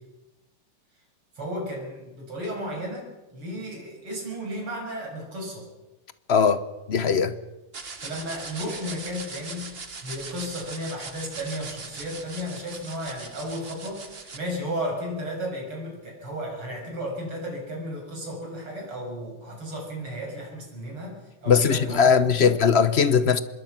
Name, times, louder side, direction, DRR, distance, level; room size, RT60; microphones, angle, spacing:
voice 1, 1.4-5.7 8.0-9.8 10.0-22.5, equal, 80° right, 7.8 m, -34 dB
voice 2, 6.3-6.6 6.9-7.3 21.5-23.4, left 6 dB, 45° left, 0.8 m, -19 dB
sound 1, 7.7-14.4, right 4 dB, 30° right, 1.6 m, -40 dB
25.5 x 21.5 x 5.9 m
omnidirectional pair, 2.4 m